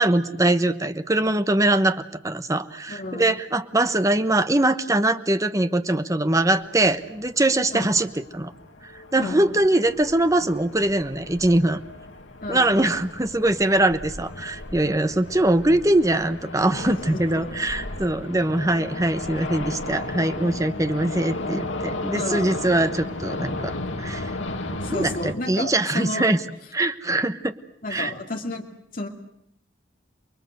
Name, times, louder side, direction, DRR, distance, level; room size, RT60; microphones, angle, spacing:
voice 1, 0.0-8.1 8.3-8.5 9.1-11.8 12.5-23.7 24.0-24.3 24.6-26.4 26.7-27.5 27.9-28.1, right 1 dB, 15° right, 10 dB, 1.0 m, -22 dB
voice 2, 2.9-3.2 7.7-7.9 9.2-9.4 12.4-12.7 16.8-17.7 22.1-22.6 24.8-26.3 27.8-28.6 28.9-29.1, left 2 dB, 45° left, 3 dB, 2.4 m, -32 dB
sound 1, 6.3-25.3, left 2 dB, 75° left, 2.2 m, -35 dB
29.5 x 21.0 x 7.9 m, 0.75 s
head